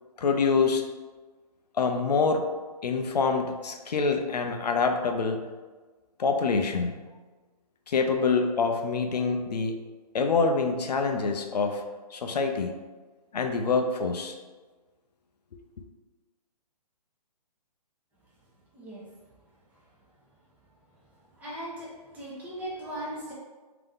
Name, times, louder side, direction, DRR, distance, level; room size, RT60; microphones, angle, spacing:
voice 1, 0.2-0.8 1.7-2.5 2.8-5.4 6.2-7.0 7.9-9.8 10.1-11.8 12.1-12.7 13.3-14.4, left 4 dB, 80° left, 5 dB, 0.6 m, -26 dB
voice 2, 21.4-21.9 22.1-23.3, right 1 dB, 10° right, -8 dB, 0.9 m, -37 dB
3.4 x 2.9 x 3.6 m, 1.3 s
hypercardioid pair, 145°, 21 cm